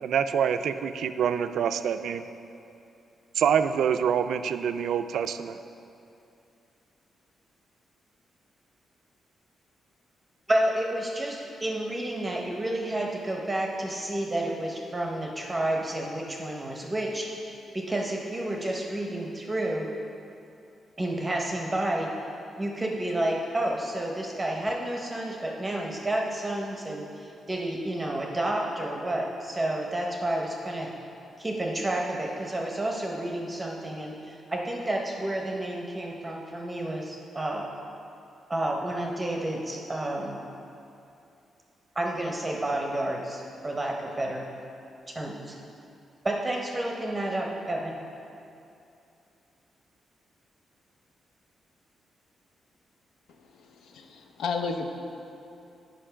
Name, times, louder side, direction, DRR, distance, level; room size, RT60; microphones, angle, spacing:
voice 1, 0.0-2.2 3.4-5.6, right 8 dB, 75° right, 10 dB, 0.3 m, -26 dB
voice 2, 10.5-19.9 21.0-22.1 22.6-30.9 31.4-37.7 38.5-40.4 42.0-44.5 45.1-45.6 46.2-48.1, right 1 dB, 15° right, 0 dB, 0.7 m, -30 dB
voice 3, 53.3-54.9, left 4 dB, 90° left, 5 dB, 0.6 m, -33 dB
8.8 x 5.1 x 5.7 m, 2.7 s
wide cardioid pair, 160°, 0 cm